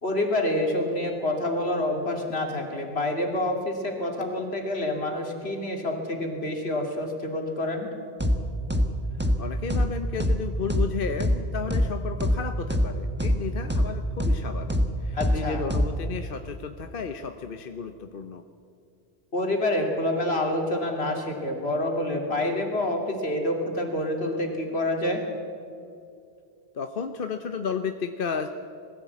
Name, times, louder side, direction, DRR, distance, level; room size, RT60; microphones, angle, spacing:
voice 1, 0.0-7.9 15.1-15.7 19.3-25.2, left 1 dB, 75° left, 2 dB, 3.0 m, -27 dB
sound 1, 8.2-8.4 8.7-8.9 9.2-9.4 9.7-9.9 10.2-10.4 10.7-10.9 11.2-11.4 11.7-11.9 12.2-12.4 12.7-12.9 13.2-13.4 13.7-13.9 14.2-14.4 14.7-14.9 15.2-15.4 15.7-15.9, left 1 dB, 10° right, 1.3 m, -22 dB
voice 2, 9.4-18.4 26.7-28.5, left 6 dB, 60° left, 7 dB, 1.0 m, -33 dB
20.5 x 15.0 x 8.4 m, 2.6 s
omnidirectional pair, 1.1 m